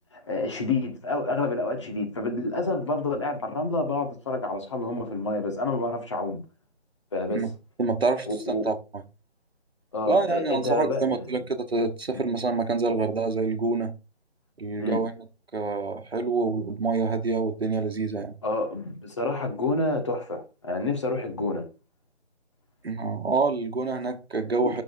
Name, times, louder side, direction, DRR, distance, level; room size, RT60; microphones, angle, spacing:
voice 1, 0.1-6.4 7.1-7.5 8.3-8.6 9.9-11.4 12.1-12.2 14.8-15.0 18.4-21.6, left 2 dB, 25° left, 1.6 m, -28 dB
voice 2, 7.8-9.0 10.1-13.9 14.6-15.1 15.5-18.3 22.8-24.8, right 3 dB, 65° right, 1.2 m, -27 dB
9.3 x 6.5 x 2.6 m
figure-of-eight pair, 155°, 33 cm